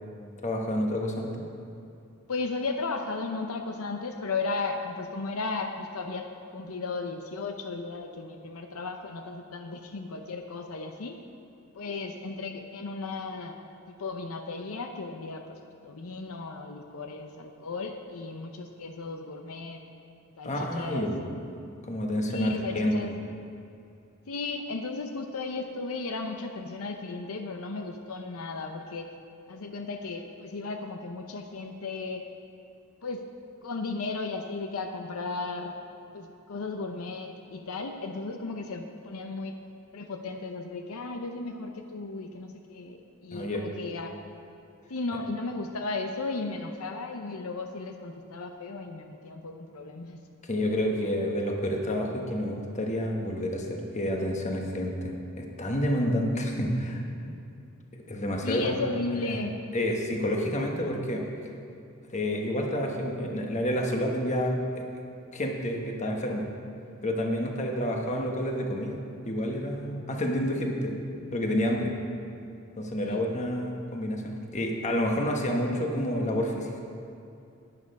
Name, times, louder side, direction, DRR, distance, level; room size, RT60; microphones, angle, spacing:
voice 1, 0.4-1.3 20.4-21.3 21.8-22.9 43.3-43.6 50.5-57.3 58.1-58.8 59.3-59.4 59.7-61.3 62.1-64.8 65.3-66.5 67.0-71.0 71.3-71.9 72.8-76.8, equal, 35° left, 1 dB, 1.2 m, -29 dB
voice 2, 2.3-6.3 6.5-11.2 11.7-13.6 13.9-19.8 20.4-21.1 22.3-23.2 24.3-29.1 29.5-32.2 33.0-33.2 33.6-35.7 36.1-39.5 39.9-44.2 44.9-50.2 58.4-59.5 73.0-73.2, left 3 dB, 75° left, 5 dB, 0.7 m, -35 dB
11.0 x 9.7 x 5.4 m, 2.6 s
head